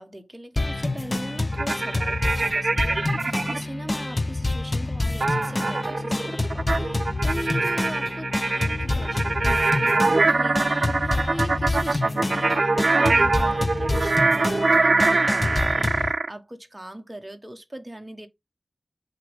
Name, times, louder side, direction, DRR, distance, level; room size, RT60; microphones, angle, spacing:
voice 1, 0.0-18.3, right 1 dB, 15° right, 1.1 m, -39 dB
sound 1, 0.6-16.1, left 2 dB, 30° left, 0.4 m, -27 dB
sound 2, 1.5-3.6 5.2-16.3, right 3 dB, 55° right, 0.4 m, -23 dB
sound 3, 6.9-13.8, equal, 5° left, 1.6 m, -47 dB
8.3 x 3.6 x 3.4 m
wide cardioid pair, 80°, 0 cm